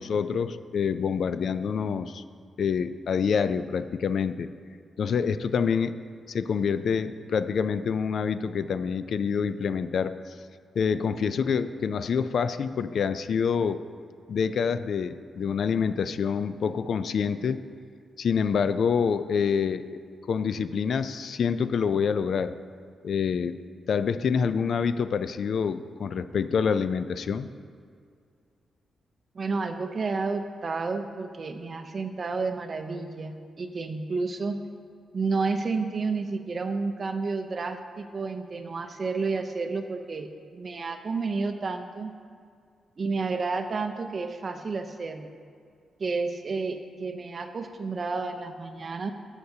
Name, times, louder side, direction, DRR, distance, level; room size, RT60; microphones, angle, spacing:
voice 1, 0.0-2.2 2.6-4.5 5.0-6.0 6.3-10.3 10.8-13.8 14.3-17.6 18.2-20.0 20.3-22.6 23.0-23.6 23.9-27.5, left 6 dB, 55° left, 12 dB, 0.3 m, -26 dB
voice 2, 29.3-34.6 35.1-42.1 43.0-45.3 46.0-49.1, right 4 dB, 35° right, 7 dB, 0.6 m, -31 dB
14.5 x 8.0 x 2.8 m, 2.3 s
wide cardioid pair, 150°, 0 cm